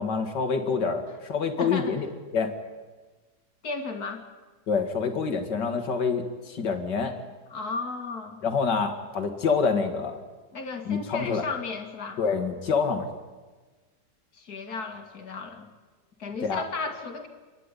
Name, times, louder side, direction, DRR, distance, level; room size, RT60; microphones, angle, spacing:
voice 1, 0.0-2.1 2.3-2.5 4.7-7.1 8.4-10.2 10.9-11.4 12.2-13.1 16.4-16.6, left 5 dB, 80° left, 6 dB, 2.5 m, -26 dB
voice 2, 1.6-2.0 3.6-4.2 7.5-8.4 10.5-12.2 14.3-15.7 16.2-17.3, left 4 dB, 60° left, 5 dB, 2.5 m, -34 dB
28.0 x 11.0 x 9.9 m, 1.4 s
omnidirectional pair, 1.8 m